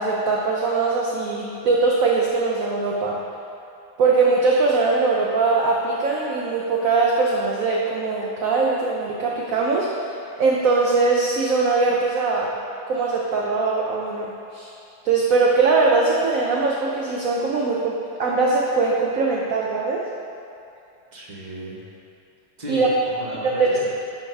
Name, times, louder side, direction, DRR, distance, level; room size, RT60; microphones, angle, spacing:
voice 1, 0.0-3.2 4.0-10.1 10.4-12.5 12.9-14.7 15.0-17.9 18.2-20.0 22.7-22.9 23.4-23.9, right 3 dB, 60° right, -2 dB, 1.0 m, -21 dB
voice 2, 21.1-21.8 22.6-23.9, equal, 25° right, -4 dB, 1.3 m, -35 dB
11.5 x 5.1 x 4.8 m, 2.6 s
omnidirectional pair, 2.1 m